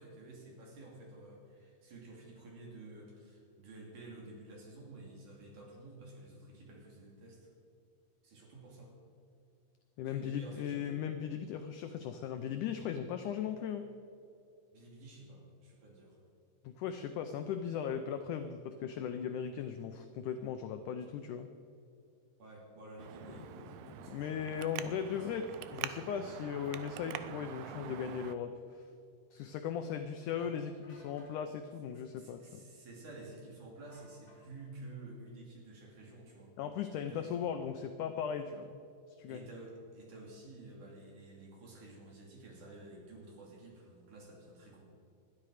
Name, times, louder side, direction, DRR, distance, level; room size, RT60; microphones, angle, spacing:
voice 1, 0.0-7.5 8.2-8.9 10.0-11.0 14.7-16.2 22.4-24.6 25.1-25.3 30.4-30.5 32.0-36.5 37.1-37.3 39.3-44.9, right 2 dB, 55° right, -1 dB, 4.3 m, -51 dB
voice 2, 10.0-13.9 16.6-21.5 24.1-28.8 29.3-32.7 36.6-38.8 39.2-39.4, left 8 dB, 80° left, 7 dB, 1.8 m, -38 dB
Traffic noise roadway noise, 23.0-28.3, right 12 dB, 85° right, 2.6 m, -45 dB
sound 1, 25.1-25.3 27.5-27.9 30.8-31.4 33.9-34.7, left 1 dB, 20° left, 3.8 m, -61 dB
20.5 x 12.5 x 5.0 m, 2.6 s
omnidirectional pair, 4.3 m